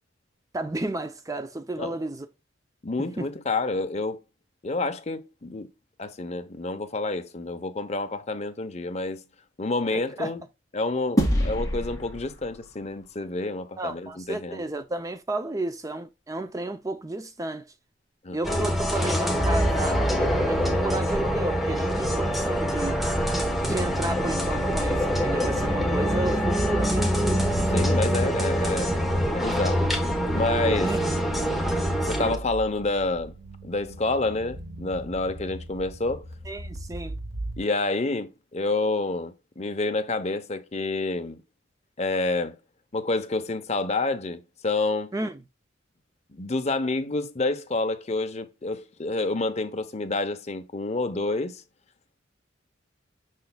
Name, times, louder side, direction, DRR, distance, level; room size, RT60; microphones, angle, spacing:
voice 1, 0.5-2.3 3.0-3.3 9.9-10.3 13.8-17.7 18.3-23.0 23.6-27.2 30.8-31.2 36.5-37.1 45.1-45.4, right 2 dB, 15° right, 0.5 m, -32 dB
voice 2, 2.8-4.2 4.6-5.7 6.0-9.2 9.6-10.4 10.7-14.6 18.2-18.4 27.7-29.0 29.3-29.8 30.3-30.9 32.0-33.3 33.6-36.2 37.6-41.4 42.0-42.6 42.9-45.1 46.3-51.6, left 2 dB, 35° left, 0.8 m, -28 dB
sound 1, 11.2-13.8, equal, 20° left, 2.1 m, -28 dB
sound 2, 18.4-32.4, equal, ahead, 1.1 m, -25 dB
sound 3, 19.4-37.6, right 1 dB, 85° right, 1.3 m, -35 dB
6.8 x 6.3 x 2.3 m
head